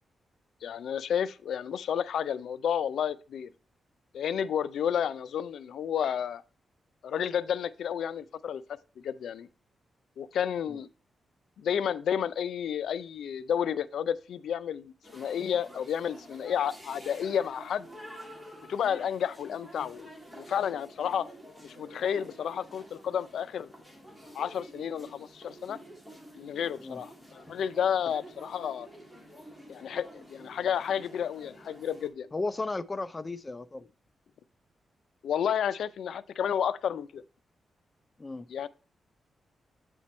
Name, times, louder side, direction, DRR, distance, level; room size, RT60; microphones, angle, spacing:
voice 1, 0.6-3.5 4.1-6.4 7.0-8.6 9.0-9.5 10.2-10.9 11.6-17.9 18.7-20.1 20.4-21.3 21.6-23.7 24.3-25.8 26.4-28.9 29.7-32.3 35.2-37.2 38.5-38.7, left 8 dB, 85° left, 0.4 m, -31 dB
sound 1, 15.0-32.1, equal, ahead, 1.9 m, -49 dB
voice 2, 32.3-33.9 38.2-38.5, left 3 dB, 20° left, 0.4 m, -35 dB
8.2 x 4.5 x 4.2 m
wide cardioid pair, 125°, 0 cm